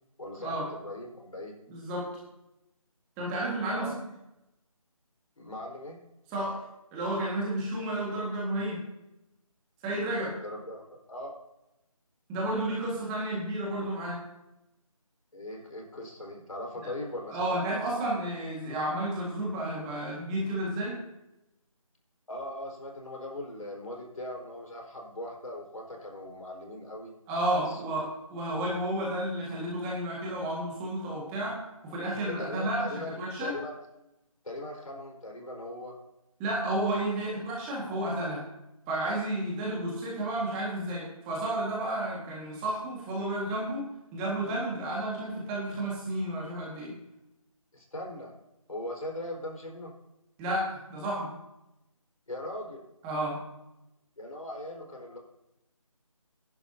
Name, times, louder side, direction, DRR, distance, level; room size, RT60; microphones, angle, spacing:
voice 1, 0.2-1.5 3.7-3.9 5.4-6.0 10.4-11.4 15.3-17.8 22.3-27.1 27.7-28.0 32.2-33.8 34.4-35.9 47.7-48.3 48.7-49.9 52.3-52.8 54.2-55.2, left 1 dB, 75° left, 0 dB, 4.5 m, -40 dB
voice 2, 1.7-2.1 3.2-3.9 6.3-6.6 6.9-8.8 9.8-10.3 12.3-14.2 17.3-21.0 27.3-31.6 31.8-32.9 33.2-33.5 36.4-38.4 38.9-43.9 44.1-46.9 50.4-51.3 53.0-53.4, right 1 dB, 10° right, -5 dB, 1.8 m, -31 dB
18.0 x 11.0 x 2.8 m, 0.91 s
figure-of-eight pair, 165°, 18 cm